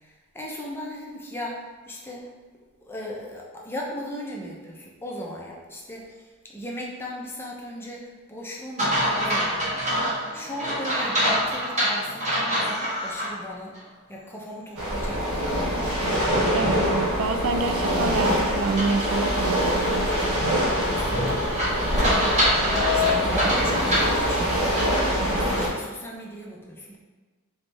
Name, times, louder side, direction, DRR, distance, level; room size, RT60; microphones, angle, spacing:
voice 1, 0.0-2.3 2.8-9.8 10.3-13.7 14.1-16.2 20.8-22.3 22.7-27.0, equal, 10° left, -2 dB, 0.6 m, -37 dB
sound 1, 8.8-13.3 13.7-13.8 18.8-25.1, equal, 30° right, 1.3 m, -26 dB
sound 2, 14.8-25.7, equal, 80° right, 1.0 m, -24 dB
voice 2, 16.5-20.4, right 4 dB, 60° right, 6 dB, 0.3 m, -28 dB
3.4 x 3.2 x 4.1 m, 1.4 s
head